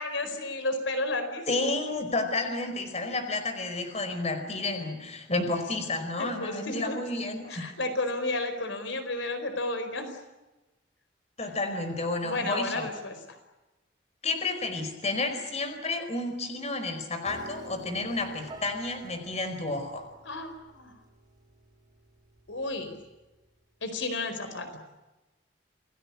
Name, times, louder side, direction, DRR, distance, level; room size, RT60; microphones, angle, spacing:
voice 1, 0.0-1.7 6.2-7.0 7.5-10.2 12.2-13.4 20.2-20.9 22.5-23.0 23.8-24.8, left 2 dB, 75° left, 8 dB, 4.7 m, -32 dB
voice 2, 1.5-7.7 11.4-12.9 14.2-20.1, left 2 dB, 35° left, 7 dB, 5.0 m, -31 dB
Piano, 17.3-23.5, right 2 dB, 20° right, 4.9 m, -49 dB
29.0 x 20.0 x 8.6 m, 1.1 s
head